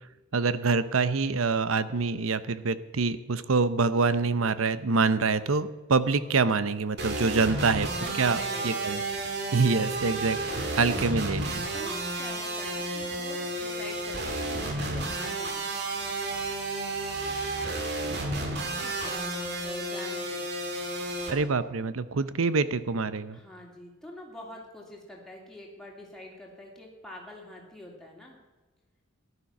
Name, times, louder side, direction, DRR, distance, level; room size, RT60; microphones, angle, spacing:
voice 1, 0.3-7.9 8.2-9.0 9.5-11.7 21.3-23.4, right 4 dB, 85° right, 14 dB, 0.8 m, -26 dB
sound 1, 7.0-21.3, right 2 dB, 55° right, 2.3 m, -32 dB
voice 2, 7.4-8.7 11.7-15.7 18.0-20.4 23.3-28.4, left 1 dB, 5° left, -2 dB, 2.9 m, -46 dB
14.5 x 11.5 x 6.0 m, 1.2 s
head